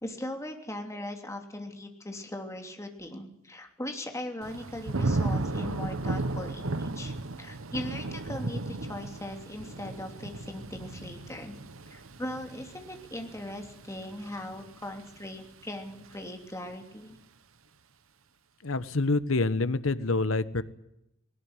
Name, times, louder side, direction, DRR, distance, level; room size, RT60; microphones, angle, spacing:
voice 1, 0.0-11.5 11.9-17.2, left 1 dB, 15° left, 4 dB, 3.0 m, -39 dB
Thunder / Rain, 4.4-15.3 15.8-16.2, right 2 dB, 80° right, 1.1 m, -35 dB
voice 2, 18.6-20.6, left 3 dB, 75° left, 13 dB, 1.2 m, -27 dB
19.5 x 18.5 x 9.8 m, 0.84 s
head